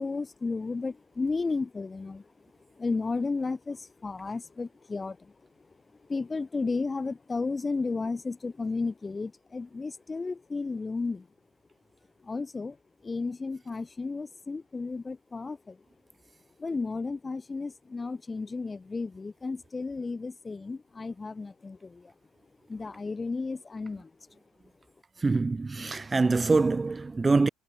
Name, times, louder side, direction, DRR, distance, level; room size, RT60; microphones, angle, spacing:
voice 1, 0.0-2.2 2.8-5.2 6.1-11.2 12.3-12.8 13.0-15.8 16.6-22.1 22.7-24.1, left 4 dB, 20° left, 1.1 m, -33 dB
voice 2, 25.2-27.5, right 3 dB, 20° right, 1.5 m, -24 dB
figure-of-eight pair, 60°, 0 cm